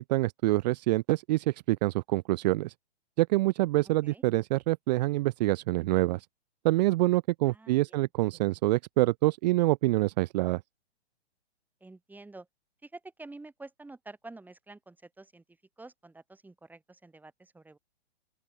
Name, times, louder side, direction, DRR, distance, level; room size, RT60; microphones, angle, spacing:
voice 1, 0.0-2.7 3.2-6.3 6.6-10.6, right 19 dB, 40° right, 0.7 m, -26 dB
voice 2, 7.5-8.1 11.8-12.5 12.8-15.4 15.8-17.8, right 2 dB, 5° right, 5.0 m, -49 dB
open air
hypercardioid pair, 130°, 33 cm